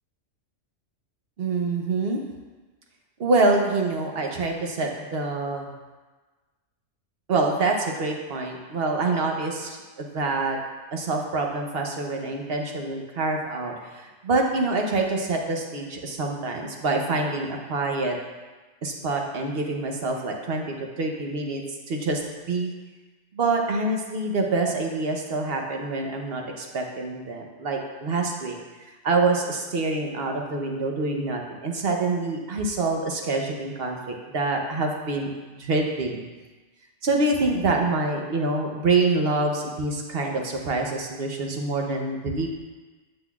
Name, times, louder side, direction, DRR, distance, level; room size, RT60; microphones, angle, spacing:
voice 1, 1.4-2.2 3.2-5.7 7.3-10.6 10.9-18.2 18.8-20.6 21.0-21.6 21.9-22.2 22.5-22.7 23.3-28.6 29.0-35.3 35.5-36.2 37.0-42.5, right 3 dB, 50° right, 2 dB, 0.9 m, -26 dB
7.9 x 7.7 x 2.3 m, 1.3 s
omnidirectional pair, 1.4 m